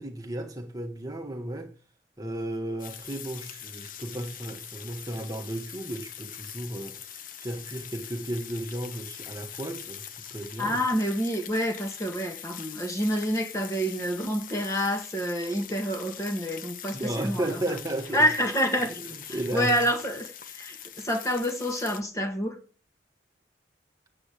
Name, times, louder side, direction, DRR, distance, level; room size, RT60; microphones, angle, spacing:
voice 1, 0.0-1.7 2.2-10.8 16.9-18.3 19.3-19.7, right 1 dB, 20° right, 1.5 m, -34 dB
sound 1, 2.8-22.0, left 9 dB, 45° left, 0.9 m, -43 dB
voice 2, 10.6-17.6 18.1-22.6, equal, 15° left, 1.6 m, -28 dB
10.0 x 8.5 x 8.3 m
head